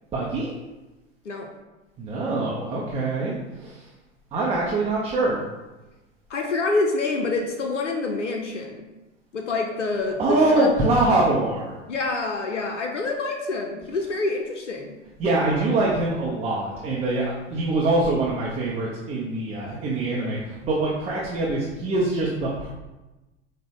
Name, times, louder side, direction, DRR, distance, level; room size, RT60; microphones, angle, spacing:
voice 1, 0.1-0.5 2.0-3.9 4.3-5.5 10.2-11.8 15.2-22.7, right 2 dB, 15° right, -5 dB, 0.5 m, -24 dB
voice 2, 6.3-8.9 9.3-10.7 11.9-15.0, left 3 dB, 85° left, 2 dB, 0.5 m, -27 dB
5.1 x 2.1 x 3.4 m, 1.1 s
figure-of-eight pair, 90°, 36 cm